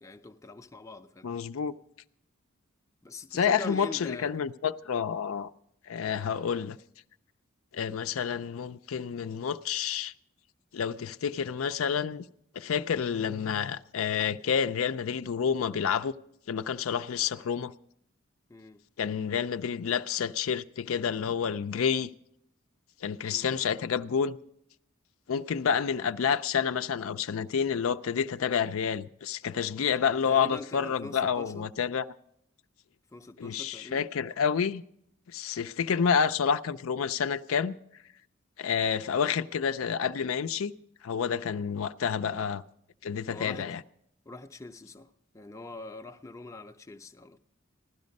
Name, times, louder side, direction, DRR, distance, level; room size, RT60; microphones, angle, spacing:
voice 1, 0.0-1.3 3.0-4.3 18.5-18.8 23.3-23.7 30.1-31.7 33.1-34.1 43.3-43.7 44.2-47.4, left 2 dB, 15° left, 0.5 m, -43 dB
voice 2, 1.2-1.7 3.3-5.5 5.9-6.8 7.7-10.1 10.7-12.3 12.5-16.1 16.5-17.7 19.0-22.1 23.0-24.4 25.3-32.1 33.4-34.8 35.3-37.8 38.6-40.7 41.0-42.6 43.0-43.8, left 7 dB, 75° left, 0.4 m, -29 dB
16.0 x 12.0 x 5.2 m
head